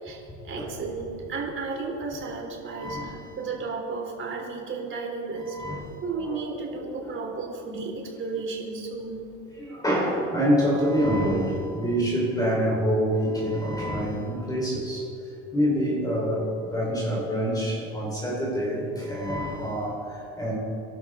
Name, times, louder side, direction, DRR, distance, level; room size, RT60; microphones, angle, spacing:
voice 1, 0.0-5.6 6.0-9.3, right 4 dB, 30° right, 0 dB, 3.5 m, -33 dB
voice 2, 2.7-3.4 5.5-6.0 6.3-6.6 9.6-15.1 15.5-20.6, equal, 10° left, -4 dB, 4.2 m, -26 dB
24.0 x 11.5 x 3.7 m, 2.6 s
supercardioid pair, 125°, 40 cm